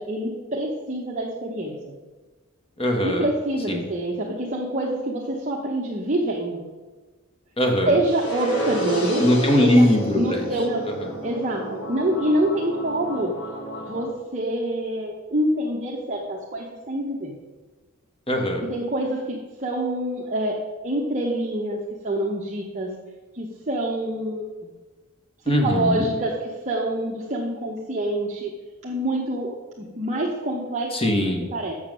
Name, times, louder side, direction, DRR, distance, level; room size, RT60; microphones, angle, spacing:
voice 1, 0.0-1.7 3.0-6.6 7.9-9.2 9.6-9.9 10.1-10.9 11.2-13.3 13.9-17.3 18.6-20.6 20.8-21.8 22.0-22.9 23.3-24.7 25.6-28.5 28.8-31.0 31.5-31.7, right 1 dB, 30° right, -3 dB, 0.9 m, -26 dB
voice 2, 2.8-3.3 3.7-3.8 7.6-8.0 9.2-10.5 18.3-18.6 25.4-26.1 30.9-31.4, left 1 dB, 25° left, 3 dB, 1.3 m, -20 dB
sound 1, 8.0-14.0, right 1 dB, 85° left, 2.1 m, -30 dB
7.1 x 6.8 x 6.2 m, 1.3 s
head